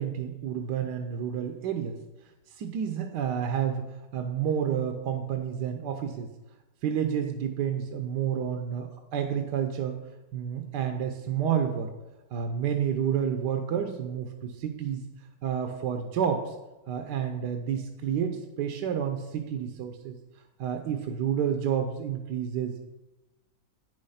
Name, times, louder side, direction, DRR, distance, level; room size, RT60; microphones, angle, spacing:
voice 1, 0.0-2.0 2.6-3.8 4.1-6.3 6.8-10.0 10.3-11.9 12.3-15.0 15.4-16.5 16.9-20.1 20.6-22.8, right 8 dB, 75° right, 5 dB, 1.3 m, -30 dB
9.2 x 6.4 x 5.7 m, 1.0 s
omnidirectional pair, 1.9 m